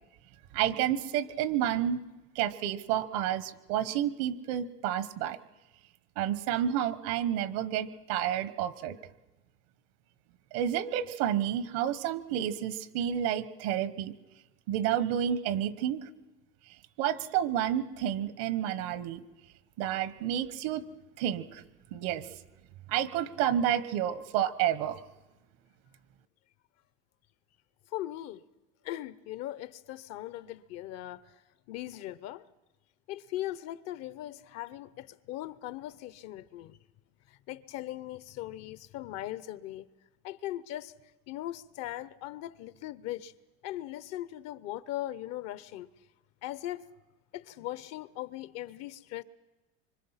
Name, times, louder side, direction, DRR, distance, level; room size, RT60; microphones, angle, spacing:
voice 1, 0.5-2.0 2.3-5.4 6.2-9.0 10.5-14.1 14.7-16.0 17.0-19.2 19.8-20.8 21.2-21.6 21.9-22.3 22.9-25.0, right 10 dB, 80° right, 1.3 m, -30 dB
voice 2, 27.9-28.4 28.8-31.4 31.7-32.4 33.1-36.8 37.3-39.9 40.2-40.9 41.3-43.3 43.6-45.9 46.4-46.8 47.3-49.2, left 14 dB, 60° left, 0.9 m, -39 dB
25.0 x 24.5 x 5.8 m
cardioid pair, 145°, 29 cm